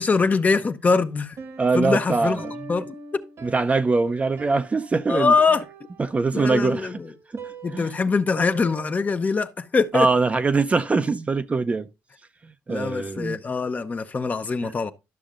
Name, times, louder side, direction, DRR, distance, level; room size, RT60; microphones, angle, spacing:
voice 1, 0.0-1.4 1.7-2.9 5.1-5.6 6.3-7.1 7.6-10.1 12.7-14.9, left 4 dB, 30° left, 0.7 m, -23 dB
Piano, 1.4-9.2, right 4 dB, 60° right, 1.3 m, -42 dB
voice 2, 1.6-2.5 3.4-5.3 6.0-6.9 7.3-7.4 7.7-7.9 9.9-11.9 12.7-13.4 14.6-14.7, right 4 dB, 25° right, 0.6 m, -22 dB
11.5 x 6.3 x 2.5 m
cardioid pair, 95°, 5 cm